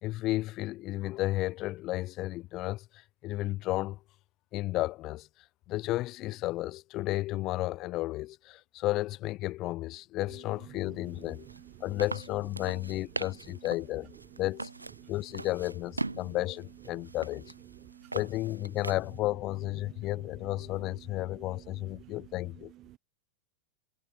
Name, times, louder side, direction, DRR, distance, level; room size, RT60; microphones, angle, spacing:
voice 1, 0.0-4.0 4.5-5.3 5.7-11.5 11.8-14.1 14.4-14.7 15.1-17.5 18.1-22.7, left 17 dB, 35° left, 3.7 m, -33 dB
sound 1, 11.1-19.2, right 2 dB, 80° right, 3.7 m, -41 dB
voice 2, 17.7-18.1 19.8-20.1 22.0-22.2 22.9-23.0, right 15 dB, 35° right, 0.8 m, -52 dB
figure-of-eight pair, 90°, 0 cm